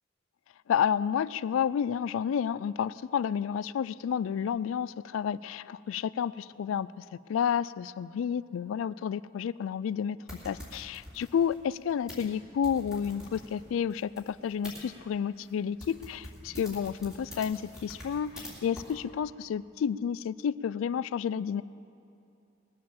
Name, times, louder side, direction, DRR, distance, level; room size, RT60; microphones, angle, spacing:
voice 1, 0.7-10.2 10.4-21.6, left 8 dB, 85° left, 19 dB, 0.3 m, -30 dB
sound 1, 10.3-14.8 15.4-15.5 15.8-18.5 18.8-18.9, left 1 dB, 5° right, 2.9 m, -46 dB
20.0 x 7.6 x 7.1 m, 2.7 s
head